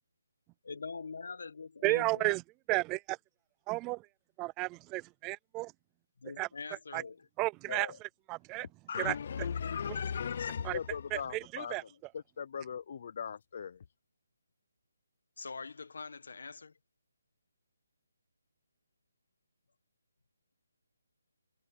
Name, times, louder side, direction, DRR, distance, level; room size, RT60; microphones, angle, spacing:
voice 1, 0.6-2.4 6.2-7.3 15.4-16.7, left 4 dB, 65° left, 1.7 m, -43 dB
voice 2, 1.8-2.4 2.7-3.2 3.7-4.0 4.4-5.7 6.4-6.5 6.9-7.0 7.4-8.7 9.0-9.1 10.6-10.8 11.1-11.8, right 22 dB, 15° right, 0.4 m, -33 dB
voice 3, 8.9-11.8 12.1-13.8, left 7 dB, 40° left, 0.6 m, -37 dB
hypercardioid pair, 175°, 0 cm